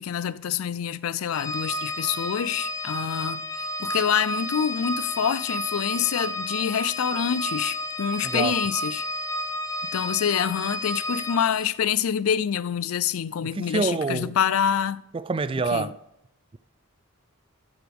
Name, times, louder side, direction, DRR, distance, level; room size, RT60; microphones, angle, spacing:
voice 1, 0.0-3.5 3.8-9.1 9.9-15.0 15.7-15.9, left 8 dB, 80° left, 0.4 m, -26 dB
Organ, 1.3-11.7, left 1 dB, 15° left, 0.7 m, -31 dB
voice 2, 8.2-8.5 13.5-14.3 15.1-16.0, right 4 dB, 25° right, 0.3 m, -26 dB
14.0 x 9.5 x 3.5 m
head